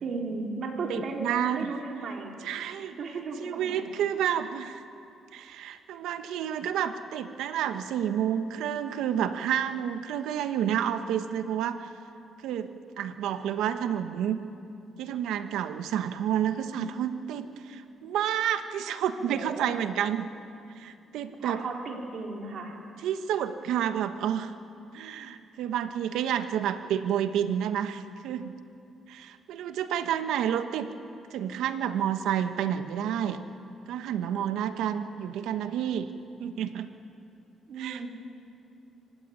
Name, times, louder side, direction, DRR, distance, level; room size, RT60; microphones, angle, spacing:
voice 1, 0.0-2.3 2.8-3.9 19.2-19.8 21.4-22.8 37.7-38.1, right 3 dB, 60° right, 1 dB, 4.2 m, -35 dB
voice 2, 0.9-1.7 2.4-3.0 3.4-4.8 5.3-11.9 12.4-12.7 13.0-14.4 15.0-20.3 20.8-21.6 23.0-24.5 24.9-28.5 29.1-30.9 31.3-33.4 33.9-36.1 36.4-36.9 37.8-38.1, right 9 dB, 85° right, 10 dB, 1.2 m, -30 dB
24.5 x 16.0 x 9.8 m, 2.5 s
cardioid pair, 90°, 0 cm